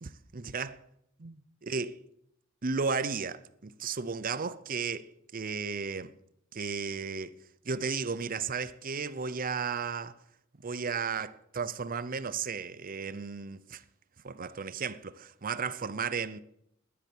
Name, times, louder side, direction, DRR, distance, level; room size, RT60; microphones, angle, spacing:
voice 1, 0.0-0.8 1.2-2.0 2.6-6.1 6.5-7.3 7.6-10.2 10.6-13.8 14.2-16.4, right 5 dB, 45° right, 0.7 m, -34 dB
11.5 x 10.5 x 7.2 m
head